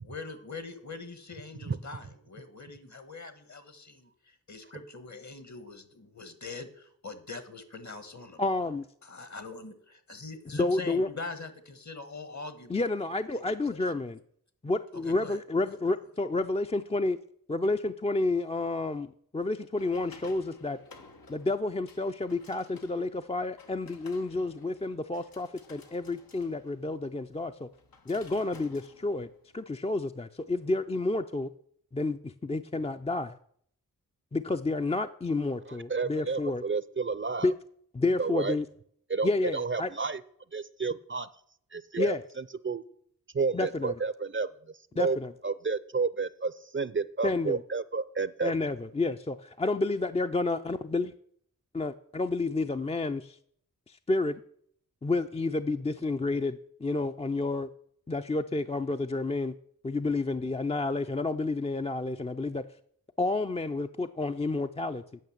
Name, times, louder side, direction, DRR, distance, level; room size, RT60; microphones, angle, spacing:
voice 1, 0.0-8.4 9.0-9.7 10.1-12.8 13.1-13.9 15.0-16.0, left 3 dB, 55° left, 11 dB, 1.4 m, -43 dB
voice 2, 8.4-8.8 10.5-11.1 12.7-14.2 14.6-17.2 17.5-20.8 21.3-27.7 28.1-29.3 29.5-31.5 31.9-33.4 34.3-36.6 37.4-37.5 37.9-38.7 39.2-39.9 42.0-42.2 43.5-43.9 45.0-45.3 47.2-47.6 48.4-51.1 51.7-53.4 53.9-54.4 55.0-57.7 58.1-59.5 59.8-62.7 63.2-65.0, left 2 dB, 20° left, 8 dB, 0.4 m, -30 dB
sound 1, 19.8-29.8, left 3 dB, 85° left, 1.2 m, -55 dB
voice 3, 35.9-37.5 38.2-38.6 39.1-40.2 40.5-41.3 41.7-42.8 43.3-44.5 44.9-45.2 45.4-48.5, right 4 dB, 35° right, 16 dB, 0.5 m, -31 dB
9.3 x 5.8 x 7.2 m, 0.64 s
cardioid pair, 55°, 34 cm